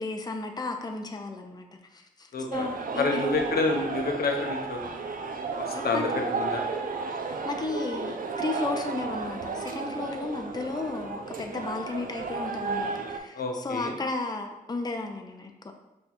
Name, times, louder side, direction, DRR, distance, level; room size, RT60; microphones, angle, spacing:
voice 1, 0.0-1.7 1.9-3.5 5.7-6.2 7.1-7.2 7.4-15.7, left 3 dB, 25° left, 4 dB, 0.5 m, -34 dB
voice 2, 2.3-2.7 2.9-4.8 5.7-6.6 13.3-13.9, left 3 dB, 90° left, 2 dB, 0.6 m, -28 dB
sound 1, 2.5-13.2, right 4 dB, 65° right, 0.5 m, -33 dB
5.3 x 2.3 x 4.2 m, 0.94 s
wide cardioid pair, 80°, 15 cm